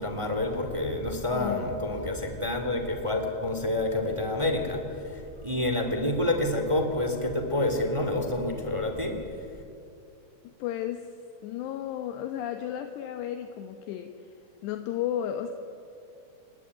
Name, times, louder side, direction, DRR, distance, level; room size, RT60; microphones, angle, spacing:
voice 1, 0.0-9.2, left 2 dB, 10° right, 5 dB, 1.9 m, -28 dB
voice 2, 1.3-1.9 10.4-11.1 11.4-14.3 14.6-15.5, left 10 dB, 80° left, 6 dB, 3.2 m, -34 dB
29.0 x 19.5 x 9.9 m, 2.6 s
omnidirectional pair, 4.9 m